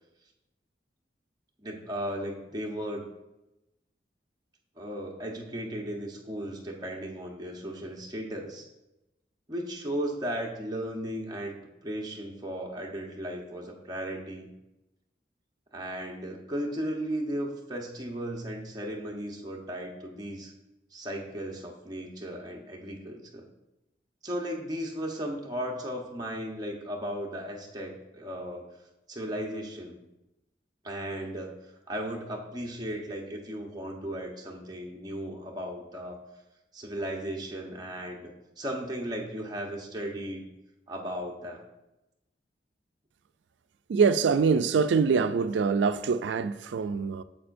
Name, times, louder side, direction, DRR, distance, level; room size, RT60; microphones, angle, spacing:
voice 1, 1.6-3.1 4.8-8.7 9.5-11.6 11.8-14.5 15.7-20.5 20.9-23.5 24.2-28.6 29.1-30.0 30.8-31.5 31.9-36.2 36.7-38.3 38.6-40.4 40.9-41.6, equal, 20° right, 0.9 m, -36 dB
voice 2, 43.9-47.2, right 5 dB, 85° right, 0.4 m, -24 dB
8.6 x 7.1 x 2.6 m
head